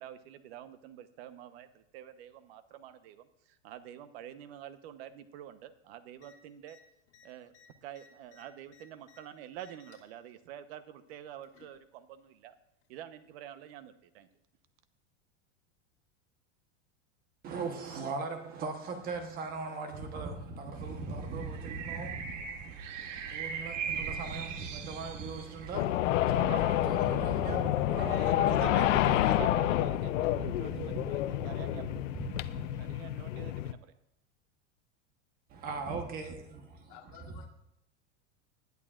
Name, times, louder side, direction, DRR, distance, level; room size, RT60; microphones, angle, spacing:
voice 1, 0.0-6.8 7.2-7.5 7.8-12.5 12.9-14.3 28.0-32.0 32.8-33.9, right 11 dB, 55° right, 1.0 m, -46 dB
sound 1, 6.2-6.3 6.6-6.8 7.1-9.2 9.5-10.1 11.1-11.8 12.8-12.9, left 7 dB, 70° left, 4.2 m, -60 dB
voice 2, 17.4-29.5 30.4-32.9 35.5-37.4, right 3 dB, 25° right, 1.1 m, -40 dB
sound 2, 20.7-25.8, right 6 dB, 80° right, 1.7 m, -39 dB
sound 3, 25.7-33.7, left 13 dB, 85° left, 0.7 m, -29 dB
voice 3, 36.9-37.5, left 9 dB, 40° left, 1.7 m, -52 dB
20.0 x 11.0 x 2.5 m
supercardioid pair, 165°, 37 cm